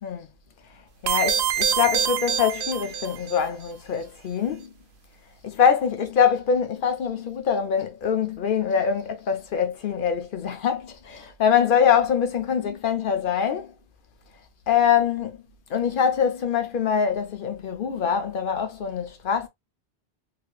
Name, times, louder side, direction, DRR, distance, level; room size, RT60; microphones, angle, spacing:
voice 1, 1.0-4.7 5.4-13.7 14.7-15.4 15.7-19.5, left 7 dB, 55° left, 0.8 m, -24 dB
sound 1, 1.1-3.4, right 8 dB, 75° right, 0.8 m, -25 dB
3.2 x 2.8 x 2.3 m
omnidirectional pair, 1.1 m